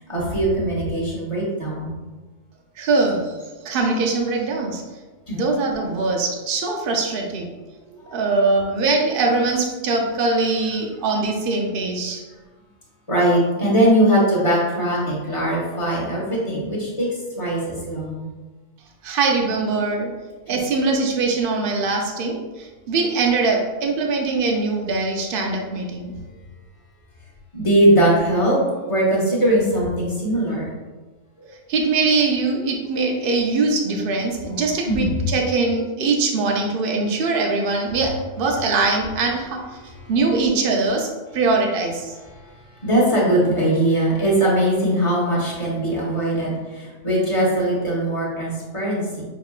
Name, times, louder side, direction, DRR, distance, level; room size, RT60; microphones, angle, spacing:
voice 1, 0.1-2.0 5.3-5.4 8.1-8.2 13.1-17.1 17.4-17.6 17.9-18.2 20.5-20.6 27.5-28.6 28.9-30.7 34.9-35.1 42.8-49.2, right 1 dB, 25° left, -5 dB, 1.3 m, -20 dB
voice 2, 2.8-3.4 3.6-4.8 5.3-7.5 8.1-12.2 19.0-20.1 20.5-26.1 31.7-39.6 40.1-42.2, right 3 dB, 55° right, 1 dB, 0.8 m, -22 dB
6.4 x 2.9 x 2.4 m, 1.3 s
omnidirectional pair, 1.2 m